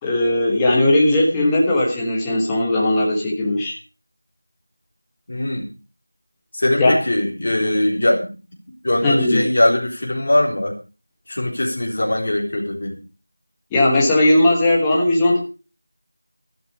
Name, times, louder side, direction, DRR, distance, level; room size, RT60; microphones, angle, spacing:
voice 1, 0.0-3.7 6.8-7.0 9.0-9.4 13.7-15.4, left 1 dB, 5° left, -4 dB, 1.5 m, -17 dB
voice 2, 5.3-5.7 6.5-8.3 8.7-10.7 11.3-13.0, left 1 dB, 35° left, -1 dB, 4.0 m, -21 dB
13.5 x 12.0 x 4.9 m, 0.33 s
figure-of-eight pair, 180°, 0 cm